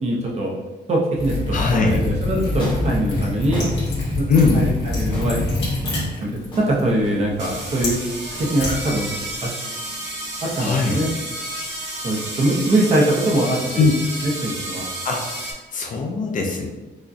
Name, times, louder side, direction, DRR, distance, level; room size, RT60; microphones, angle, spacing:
voice 1, 0.0-0.5 0.9-3.7 4.2-4.3 4.5-5.4 6.2-8.0 8.4-9.1 9.4-9.5 10.4-11.1 12.0-13.8 14.2-14.8, right 1 dB, 35° right, -2 dB, 0.7 m, -22 dB
Liquid, 1.1-9.4, left 2 dB, 70° left, 1.4 m, -26 dB
voice 2, 1.5-2.0 4.3-4.7 10.6-11.0 13.8-13.9 15.0-15.2 15.5-16.7, left 4 dB, 45° left, 1 dB, 0.4 m, -20 dB
sound 1, 2.6-10.7, left 1 dB, 25° left, 1.0 m, -37 dB
sound 2, 7.3-15.5, right 1 dB, 90° right, 1.1 m, -31 dB
4.8 x 2.2 x 2.6 m, 1.2 s
cardioid pair, 155°, 18 cm